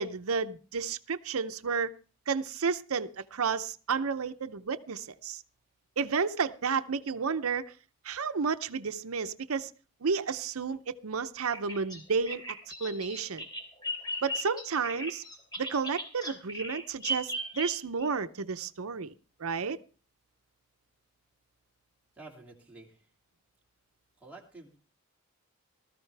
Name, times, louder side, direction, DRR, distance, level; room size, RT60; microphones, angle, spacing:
voice 1, 0.0-2.0 2.3-5.4 6.0-7.8 8.0-9.7 10.0-12.4 12.8-13.4 14.2-15.2 15.6-19.1 19.4-19.8, right 5 dB, 90° right, 0.7 m, -31 dB
Bird vocalization bird call bird song, 11.5-18.1, right 1 dB, 20° left, 3.0 m, -37 dB
voice 2, 22.1-23.1 24.2-24.8, right 2 dB, 5° right, 2.6 m, -50 dB
19.0 x 14.0 x 3.4 m
head